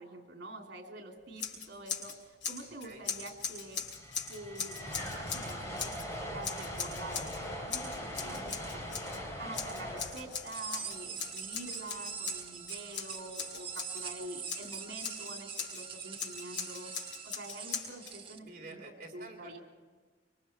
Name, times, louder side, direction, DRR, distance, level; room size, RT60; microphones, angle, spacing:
voice 1, 0.0-3.8 4.3-6.0 6.3-18.8 19.1-19.6, right 1 dB, 70° right, 2 dB, 3.5 m, -46 dB
Scissors, 1.4-2.2 2.4-6.1 6.4-7.4 7.7-9.2 9.5-14.0 14.5-15.8 16.2-18.1, left 6 dB, 80° left, 5.0 m, -40 dB
voice 2, 2.7-3.0 18.4-19.6, right 3 dB, 50° right, 1 dB, 3.2 m, -49 dB
sound 1, 3.4-3.5 3.7-11.9, equal, 15° left, 3.5 m, -41 dB
sound 2, 10.5-18.4, right 7 dB, 30° right, 1.2 m, -43 dB
25.0 x 24.0 x 4.6 m, 1.4 s
head